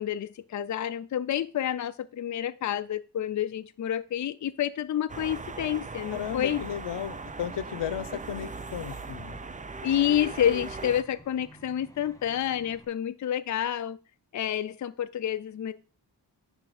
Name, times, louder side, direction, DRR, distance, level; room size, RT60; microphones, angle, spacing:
voice 1, 0.0-6.6 9.8-14.0 14.3-15.7, left 10 dB, 45° left, 11 dB, 0.5 m, -29 dB
sound 1, 5.1-11.0, right 4 dB, 20° right, 0.4 m, -39 dB
sound 2, 6.0-12.8, equal, 10° left, 1.2 m, -53 dB
voice 2, 6.1-9.4, left 9 dB, 80° left, 14 dB, 0.7 m, -35 dB
10.5 x 3.5 x 4.9 m, 0.35 s
wide cardioid pair, 100°, 41 cm